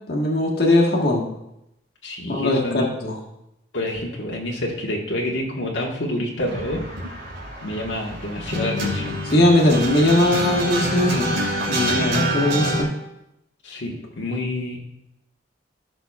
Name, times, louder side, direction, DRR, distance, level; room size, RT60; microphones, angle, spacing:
voice 1, 0.1-1.2 2.2-3.1 9.3-11.3 11.7-12.9, left 1 dB, 55° left, -1 dB, 1.5 m, -19 dB
voice 2, 2.0-2.9 3.7-6.8 7.6-9.2 13.6-14.8, left 1 dB, 80° left, -2 dB, 1.4 m, -28 dB
sound 1, 6.5-12.8, right 1 dB, 70° right, 2.9 m, -26 dB
15.5 x 6.1 x 2.4 m, 0.86 s
head